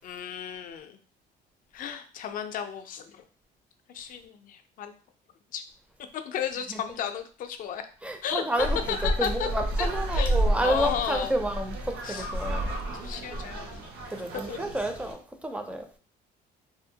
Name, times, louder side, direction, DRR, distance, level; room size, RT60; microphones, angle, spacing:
voice 1, 0.0-1.0 1.7-3.2 3.9-4.9 5.5-5.6 6.1-7.8 8.2-8.4 8.9-9.5 9.8-9.9 10.2-11.3 12.0-12.3 12.7-13.7 14.3-14.7, left 8 dB, 55° left, 0.4 m, -34 dB
voice 2, 8.0-12.7 14.1-15.9, right 1 dB, 5° right, 0.4 m, -30 dB
sound 1, 8.6-15.1, right 1 dB, 70° right, 0.7 m, -30 dB
2.7 x 2.1 x 2.7 m
cardioid pair, 110°, 17 cm